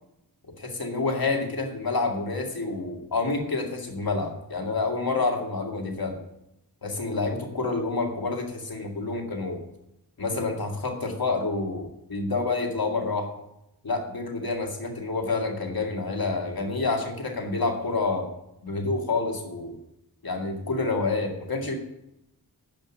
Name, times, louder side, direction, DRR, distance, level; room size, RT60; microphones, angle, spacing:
voice 1, 0.6-6.2 6.8-9.6 10.2-13.3 13.8-18.3 18.6-19.8 20.2-21.7, left 3 dB, 70° left, 2 dB, 2.1 m, -28 dB
10.5 x 5.4 x 7.2 m, 0.84 s
wide cardioid pair, 80°, 38 cm